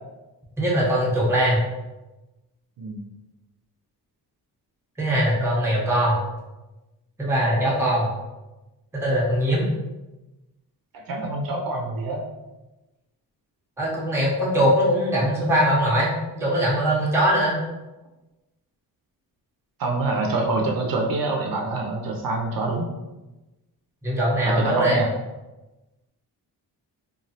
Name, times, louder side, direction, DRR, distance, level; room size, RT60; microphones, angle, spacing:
voice 1, 0.6-1.6 5.0-6.2 7.2-8.1 8.9-9.7 13.8-17.6 24.0-25.0, equal, 5° right, -5 dB, 0.6 m, -21 dB
voice 2, 11.1-12.2 19.8-22.9 24.4-25.1, right 2 dB, 60° right, 0 dB, 0.5 m, -25 dB
3.1 x 2.3 x 2.7 m, 1.1 s
cardioid pair, 150°, 39 cm